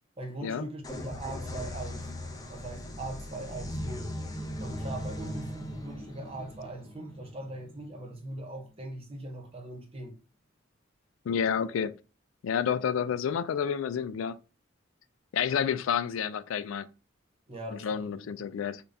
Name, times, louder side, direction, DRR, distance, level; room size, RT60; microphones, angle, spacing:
voice 1, 0.2-2.1 2.5-4.1 4.6-10.2 17.5-18.2, right 2 dB, 30° right, 0.9 m, -40 dB
sound 1, 0.8-8.4, left 1 dB, 20° left, 0.6 m, -39 dB
voice 2, 11.3-11.9 12.4-14.4 15.3-16.9 17.7-18.8, left 7 dB, 80° left, 0.3 m, -29 dB
3.9 x 2.3 x 3.3 m
head